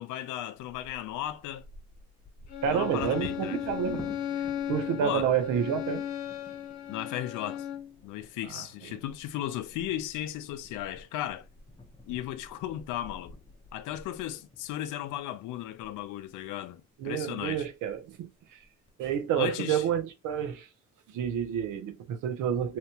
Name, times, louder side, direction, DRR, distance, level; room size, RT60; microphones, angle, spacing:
voice 1, 0.0-1.7 2.7-3.6 5.0-5.3 6.9-7.7 8.0-11.5 12.1-13.3 13.7-17.7 19.4-19.8, left 12 dB, 90° left, 0.4 m, -35 dB
Bird vocalization bird call bird song / Wind / Thunder, 0.6-16.4 17.1-17.2 17.5-17.9 18.4-18.9, left 2 dB, 15° left, 0.6 m, -49 dB
Bowed string instrument, 2.5-7.9, left 10 dB, 65° left, 0.8 m, -36 dB
voice 2, 2.6-4.1 4.7-6.1 8.5-9.0 17.0-18.6 19.0-20.7 21.1-22.8, right 8 dB, 90° right, 0.7 m, -29 dB
2.8 x 2.2 x 2.8 m
cardioid pair, 90°, 30 cm